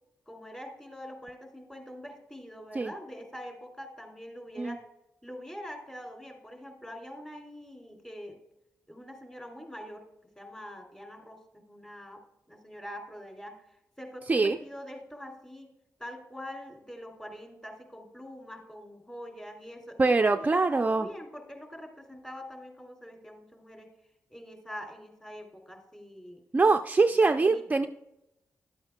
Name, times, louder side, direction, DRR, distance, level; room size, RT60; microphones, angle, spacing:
voice 1, 0.3-4.8 5.2-8.4 8.9-10.0 10.4-13.6 14.0-15.7 16.0-23.9 24.3-26.4 27.0-27.9, equal, 15° left, 2 dB, 2.6 m, -44 dB
voice 2, 20.0-21.1 26.5-27.9, right 3 dB, 25° right, 7 dB, 0.4 m, -23 dB
11.5 x 8.6 x 2.2 m, 0.86 s
cardioid pair, 60°, 6 cm